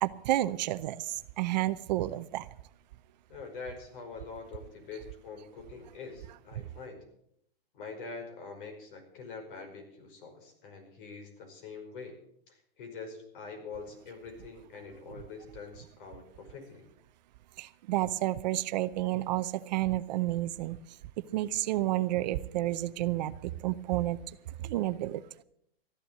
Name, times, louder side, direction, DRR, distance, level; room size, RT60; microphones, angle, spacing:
voice 1, 0.0-2.5 17.6-20.8 21.3-24.2 24.6-25.2, right 15 dB, 45° right, 13 dB, 0.7 m, -30 dB
voice 2, 3.3-7.0 7.7-12.2 12.5-16.9, left 4 dB, 60° left, 3 dB, 5.3 m, -45 dB
14.0 x 11.0 x 7.5 m, 0.72 s
hypercardioid pair, 145°, 30 cm